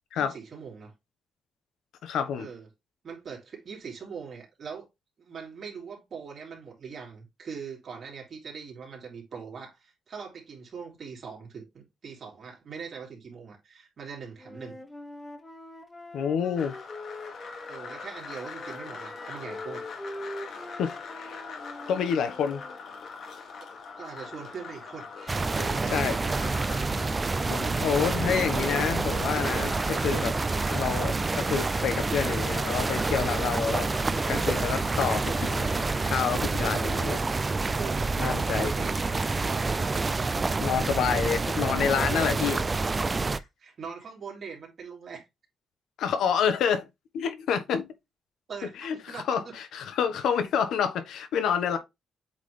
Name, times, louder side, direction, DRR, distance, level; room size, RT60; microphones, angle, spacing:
voice 1, 0.2-0.9 2.4-2.7 3.0-4.8 5.2-14.8 17.7-19.8 24.0-26.6 36.5-36.9 37.7-38.9 39.4-40.2 42.2-42.4 43.2-45.3 48.5-49.5 50.3-50.4, right 6 dB, 40° right, 3.1 m, -42 dB
voice 2, 2.0-2.5 16.1-16.7 20.8-21.4 21.9-22.6 25.9-26.2 27.5-30.3 30.7-33.9 34.3-35.7 36.0-37.2 38.2-38.7 40.6-42.6 46.0-46.8 47.1-47.9 48.8-51.8, left 7 dB, 80° left, 1.1 m, -28 dB
Wind instrument woodwind instrument, 14.4-18.1 18.4-22.8, left 1 dB, 15° left, 0.8 m, -43 dB
sound 1, 16.6-36.2, left 5 dB, 50° left, 1.4 m, -42 dB
sound 2, 25.3-43.4, right 3 dB, 20° right, 0.4 m, -28 dB
8.2 x 3.7 x 3.2 m
cardioid pair, 160°, 0 cm